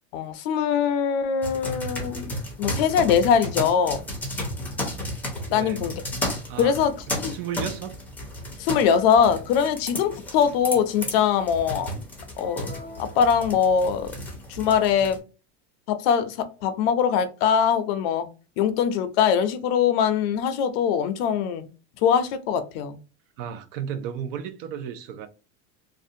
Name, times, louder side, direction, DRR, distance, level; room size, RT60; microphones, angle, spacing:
voice 1, 0.1-2.3 2.6-4.0 5.5-5.9 6.6-6.9 7.2-7.4 8.6-11.9 12.4-12.7 13.0-14.1 14.5-15.2 15.9-16.4 16.6-18.3 18.6-21.6 22.0-23.0, left 7 dB, 65° left, 0.5 m, -22 dB
sound 1, 1.4-15.2, left 1 dB, 5° left, 0.5 m, -33 dB
voice 2, 6.5-6.8 7.1-8.0 23.4-25.3, right 8 dB, 60° right, 0.5 m, -33 dB
2.5 x 2.1 x 2.6 m
supercardioid pair, 160°, 33 cm